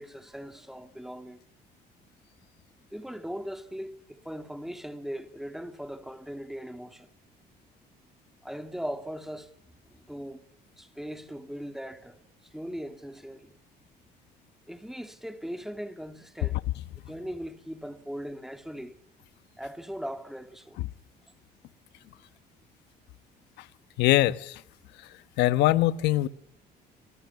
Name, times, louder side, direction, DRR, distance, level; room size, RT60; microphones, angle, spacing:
voice 1, 0.0-1.4 2.9-7.1 8.4-9.5 9.9-10.4 10.8-12.2 12.5-13.6 14.7-16.6 17.1-18.9 19.6-20.8, equal, ahead, 2.1 m, -39 dB
voice 2, 24.0-24.6 25.4-26.3, left 16 dB, 85° left, 1.2 m, -22 dB
27.5 x 23.0 x 7.0 m
cardioid pair, 110°, 17 cm